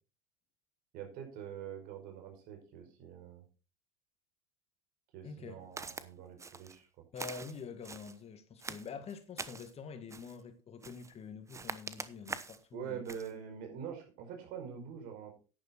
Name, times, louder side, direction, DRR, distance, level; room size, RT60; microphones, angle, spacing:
voice 1, 0.9-3.4 5.1-6.9 12.7-15.3, right 8 dB, 60° right, 5.2 m, -45 dB
voice 2, 5.2-5.6 7.1-13.0, left 5 dB, 40° left, 2.2 m, -46 dB
Walk footsteps, 5.8-6.1 6.4-6.8 7.2-8.2 8.6-9.7 10.1-10.4 10.8-11.2 11.5-12.6 13.1-13.3, right 4 dB, 15° right, 1.0 m, -44 dB
10.5 x 10.0 x 4.4 m
hypercardioid pair, 80°, 17 cm